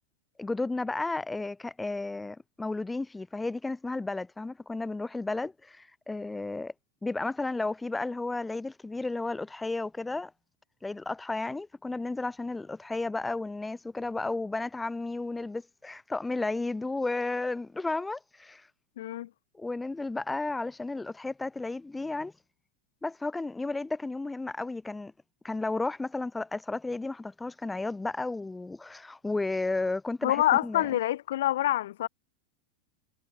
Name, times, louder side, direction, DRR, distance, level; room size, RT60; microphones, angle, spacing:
voice 1, 0.4-6.7 7.0-10.3 10.8-18.7 19.6-22.3 23.0-25.1 25.4-30.9, left 3 dB, 10° left, 0.6 m, -33 dB
voice 2, 19.0-19.3 30.2-32.1, left 14 dB, 60° left, 1.2 m, -26 dB
figure-of-eight pair, 90°, 0 cm